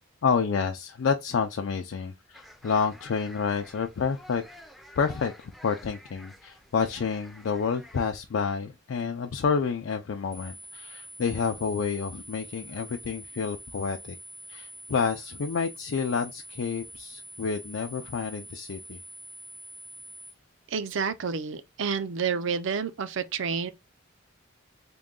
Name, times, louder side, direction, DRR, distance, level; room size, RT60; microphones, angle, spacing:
voice 1, 0.2-4.4 5.0-14.2 14.5-19.0, left 5 dB, 70° left, 0.4 m, -29 dB
sound 1, 2.3-8.1, left 1 dB, ahead, 0.4 m, -50 dB
sound 2, 10.3-20.3, equal, 80° right, 1.3 m, -45 dB
voice 2, 20.7-23.7, right 6 dB, 65° right, 0.5 m, -29 dB
3.7 x 2.3 x 3.6 m
head